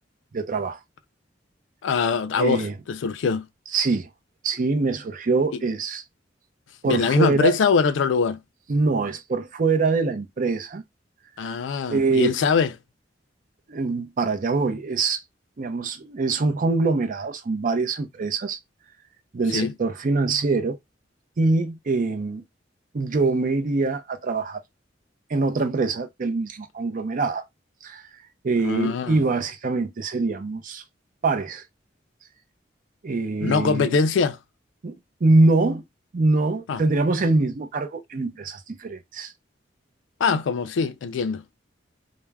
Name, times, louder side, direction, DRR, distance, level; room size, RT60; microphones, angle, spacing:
voice 1, 0.3-0.8 2.4-2.8 3.7-4.1 4.4-6.0 6.8-7.6 8.7-10.8 11.9-12.4 13.7-15.2 15.6-18.6 19.3-20.8 21.4-22.4 22.9-24.6 25.3-27.4 27.8-28.0 28.4-30.8 31.2-31.6 33.0-33.9 34.8-35.8 36.1-39.3, right 3 dB, 45° right, 0.5 m, -24 dB
voice 2, 1.8-3.5 6.8-8.4 11.4-12.7 19.5-19.7 28.6-29.2 33.4-34.4 36.7-36.8 40.2-41.4, left 5 dB, 80° left, 0.4 m, -23 dB
2.2 x 2.1 x 3.3 m
head